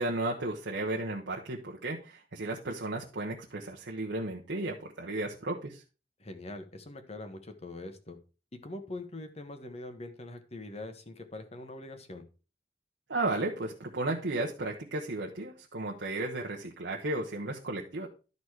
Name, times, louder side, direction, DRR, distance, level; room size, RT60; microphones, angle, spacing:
voice 1, 0.0-5.8 13.1-18.1, right 2 dB, 90° right, -2 dB, 1.1 m, -34 dB
voice 2, 6.2-8.2 8.6-12.2, left 2 dB, 35° left, 8 dB, 1.2 m, -43 dB
12.0 x 4.1 x 4.7 m, 0.33 s
head